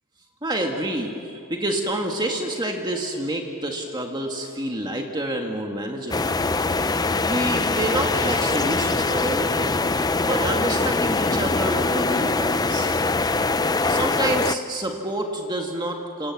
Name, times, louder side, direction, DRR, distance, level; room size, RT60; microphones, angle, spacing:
voice 1, 0.4-6.3 7.2-9.9 10.2-12.9 13.9-16.3, right 1 dB, 20° right, 1 dB, 1.8 m, -28 dB
sound 1, 6.1-14.6, left 3 dB, 15° left, 0.6 m, -23 dB
27.5 x 26.5 x 7.2 m, 2.8 s
head